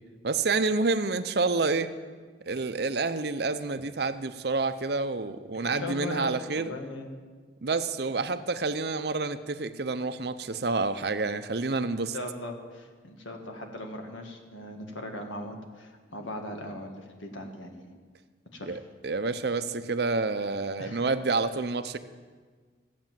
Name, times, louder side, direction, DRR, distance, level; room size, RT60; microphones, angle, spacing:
voice 1, 0.2-1.9 2.5-6.7 7.6-12.2 18.6-22.0, right 3 dB, 55° right, 11 dB, 0.6 m, -28 dB
voice 2, 5.6-7.1 8.2-8.4 12.1-17.9 18.5-18.8 20.8-21.0, left 1 dB, 85° left, 3 dB, 1.9 m, -39 dB
14.5 x 8.4 x 7.5 m, 1.5 s
head